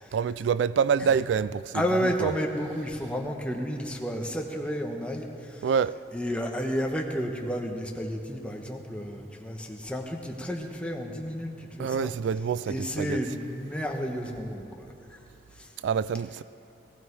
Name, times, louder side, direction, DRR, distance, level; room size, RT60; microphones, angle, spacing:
voice 1, 0.1-2.3 5.6-6.0 11.8-13.2 15.8-16.4, right 7 dB, 85° right, 0.3 m, -26 dB
voice 2, 1.7-5.7 6.1-12.1 12.7-15.2 15.6-15.7, equal, 5° left, 1.1 m, -31 dB
18.5 x 15.0 x 4.7 m
head